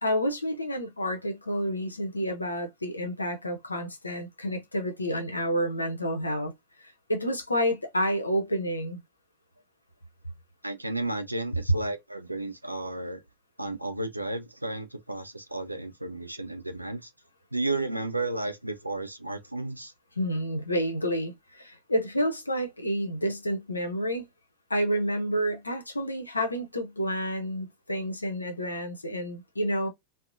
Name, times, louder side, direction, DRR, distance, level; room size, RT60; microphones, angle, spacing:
voice 1, 0.0-6.5 6.8-9.0 20.2-24.3 24.7-29.9, equal, 80° left, 0.6 m, -29 dB
voice 2, 10.6-13.2 13.6-17.1 17.5-19.9, right 2 dB, 85° right, 0.5 m, -33 dB
2.8 x 2.0 x 2.4 m
figure-of-eight pair, 90°, 0 cm